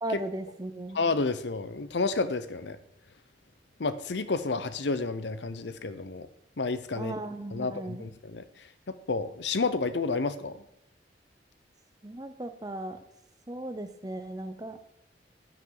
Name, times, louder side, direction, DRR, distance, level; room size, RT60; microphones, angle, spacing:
voice 1, 0.0-1.0 7.0-8.1 12.0-13.0 13.5-14.8, right 1 dB, 20° right, 8 dB, 0.8 m, -37 dB
voice 2, 0.9-2.8 3.8-6.3 6.6-7.1 7.5-8.4 8.9-10.6, left 3 dB, 85° left, 12 dB, 0.8 m, -30 dB
10.5 x 9.0 x 3.9 m, 0.78 s
head